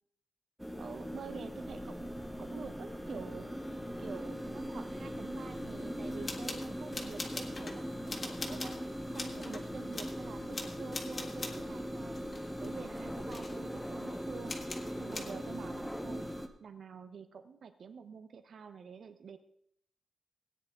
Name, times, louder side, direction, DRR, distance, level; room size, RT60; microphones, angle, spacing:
sound 1, 0.6-16.5, equal, 5° right, 0.8 m, -40 dB
voice 1, 0.8-3.5 4.0-8.7 9.1-12.2 12.6-14.6 15.0-16.3 16.6-19.4, right 6 dB, 65° right, 10 dB, 0.8 m, -48 dB
sound 2, 6.1-7.8 8.1-8.8 9.2-9.7 9.9-10.2 10.5-11.6 12.1-13.0 13.3-13.6 14.5-15.4, left 3 dB, 35° left, 1.6 m, -42 dB
17.5 x 9.4 x 3.7 m, 0.73 s
wide cardioid pair, 155°, 0 cm